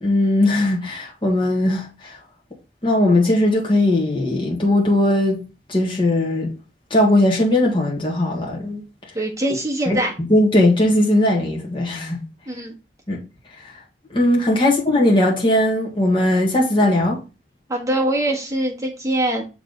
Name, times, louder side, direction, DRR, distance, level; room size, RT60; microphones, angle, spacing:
voice 1, 0.0-2.2 2.8-5.4 5.7-6.5 6.9-8.8 9.9-12.2 13.1-13.2 13.6-13.7 14.1-17.2, left 1 dB, 30° left, 1.7 m, -18 dB
voice 2, 9.1-10.1 12.5-12.7 14.6-14.7 17.7-19.4, right 1 dB, 20° right, 1.6 m, -23 dB
6.8 x 3.6 x 4.0 m
head